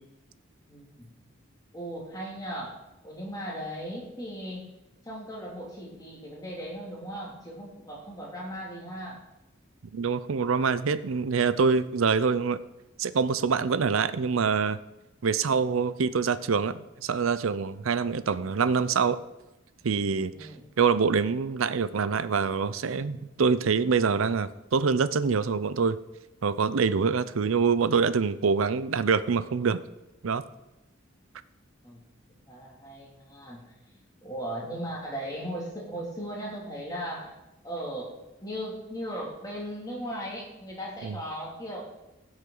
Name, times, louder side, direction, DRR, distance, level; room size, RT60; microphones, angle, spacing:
voice 1, 0.7-1.1 1.7-2.8 3.0-4.7 5.0-9.2 20.3-20.6 31.8-32.0 32.5-37.3 37.6-41.9, equal, 20° left, -3 dB, 2.5 m, -37 dB
voice 2, 9.9-12.6 13.0-14.8 15.2-19.2 19.8-20.5 20.8-26.0 26.4-29.8 30.2-30.4 41.0-41.2, right 5 dB, 80° right, 15 dB, 0.5 m, -25 dB
16.5 x 6.4 x 3.9 m, 0.98 s
head